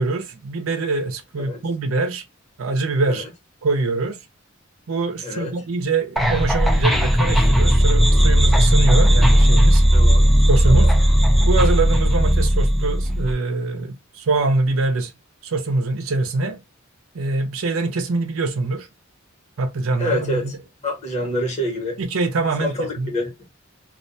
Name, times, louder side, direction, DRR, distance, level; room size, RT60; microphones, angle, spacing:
voice 1, 0.0-2.2 2.6-3.2 3.6-4.2 4.9-9.8 10.5-10.9 11.5-15.1 15.4-16.6 17.1-18.9 19.6-20.5 21.2-21.3 22.0-23.1, right 3 dB, 85° right, 0.6 m, -24 dB
voice 2, 5.2-5.5 9.9-10.3 10.6-10.9 20.0-20.5 20.8-22.0 22.6-23.3, left 1 dB, 35° left, 1.1 m, -26 dB
sound 1, 6.2-13.3, equal, ahead, 0.3 m, -16 dB
2.3 x 2.2 x 2.6 m
head